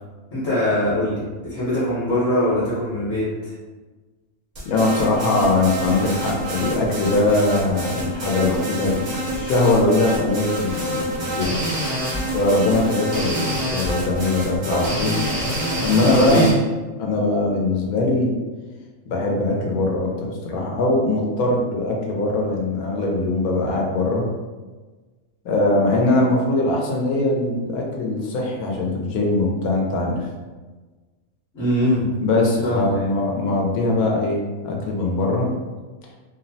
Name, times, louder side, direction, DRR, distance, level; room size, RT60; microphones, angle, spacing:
voice 1, 0.3-3.5 16.2-16.5 31.5-32.1 32.6-33.1, left 1 dB, 50° left, -10 dB, 1.0 m, -22 dB
voice 2, 4.6-11.6 12.3-13.5 13.7-15.2 15.8-16.5 17.0-18.4 19.1-24.3 25.4-30.3 32.2-35.5, left 2 dB, 85° left, -1 dB, 1.1 m, -21 dB
sound 1, 4.6-16.5, right 1 dB, 50° right, 0.5 m, -27 dB
2.8 x 2.0 x 2.6 m, 1.3 s
omnidirectional pair, 1.5 m